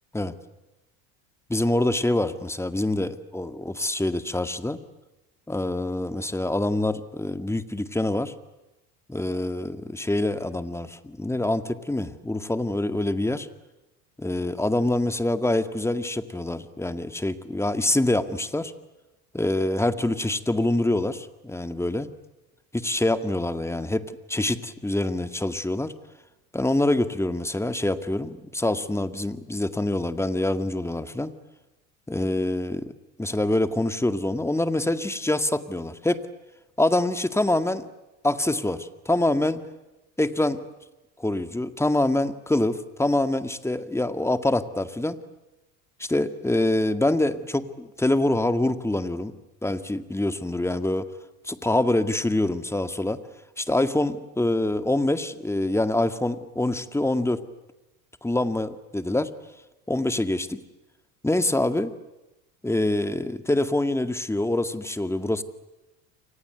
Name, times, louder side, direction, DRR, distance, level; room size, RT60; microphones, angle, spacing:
voice 1, 1.5-4.8 5.5-8.3 9.1-13.5 14.2-18.7 19.3-22.1 22.7-25.9 26.5-31.3 32.1-32.9 33.2-36.2 36.8-37.9 38.2-39.6 40.2-40.6 41.2-45.2 46.0-49.3 49.6-51.1 51.4-53.2 53.6-57.4 58.2-59.3 59.9-60.6 61.2-61.9 62.6-65.4, left 1 dB, 5° left, 9 dB, 2.0 m, -25 dB
29.0 x 25.5 x 8.0 m, 1.0 s
supercardioid pair, 100°, 45 cm